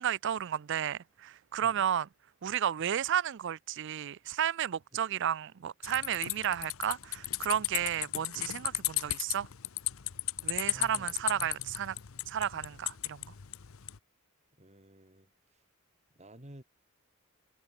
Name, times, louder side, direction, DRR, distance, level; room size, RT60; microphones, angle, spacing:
voice 1, 0.0-2.1 2.4-9.5 10.4-12.0 12.3-13.3, right 9 dB, 60° right, 0.4 m, -32 dB
sound 1, 5.8-14.0, left 17 dB, 85° left, 0.8 m, -36 dB
voice 2, 10.6-11.2 14.6-15.3 16.1-16.6, right 1 dB, 35° right, 4.4 m, -53 dB
head